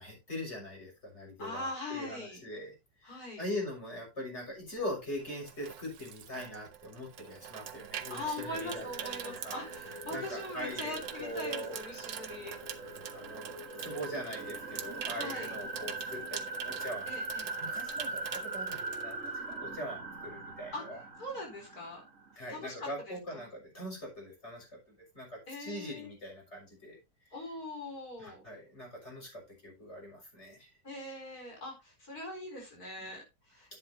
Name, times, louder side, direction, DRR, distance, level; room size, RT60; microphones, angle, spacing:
voice 1, 0.0-2.7 3.0-9.6 10.1-11.7 12.0-12.1 13.1-13.5 13.8-17.1 17.6-21.0 22.4-27.0 28.2-30.7 33.7-33.8, left 1 dB, 40° left, -2 dB, 6.6 m, -42 dB
voice 2, 1.4-2.4 3.0-3.4 8.1-12.6 15.1-15.5 17.1-17.5 20.7-20.9 21.2-22.0 22.5-23.4 25.5-26.1 27.3-28.4 30.8-33.8, left 2 dB, 55° left, 0 dB, 4.8 m, -41 dB
Water tap faucet / Sink (filling or washing), 4.7-19.7 20.0-20.3, right 9 dB, 85° right, 1.7 m, -44 dB
sound 1, 8.4-22.3, right 2 dB, 45° right, 2.1 m, -42 dB
11.0 x 9.7 x 2.8 m, 0.23 s
omnidirectional pair, 1.9 m